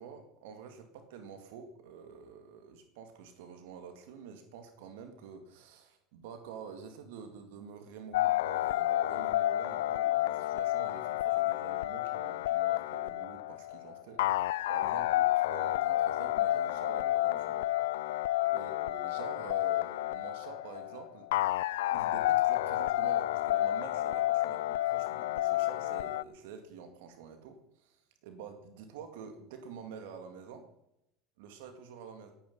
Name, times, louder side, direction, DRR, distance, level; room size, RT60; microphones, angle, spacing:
voice 1, 0.0-17.7 18.5-21.3 21.9-30.7 31.4-32.3, right 6 dB, 80° right, 7 dB, 2.1 m, -48 dB
sound 1, 8.1-26.2, left 15 dB, 85° left, 0.4 m, -30 dB
18.0 x 9.2 x 5.5 m, 0.82 s
hypercardioid pair, 90°, 0 cm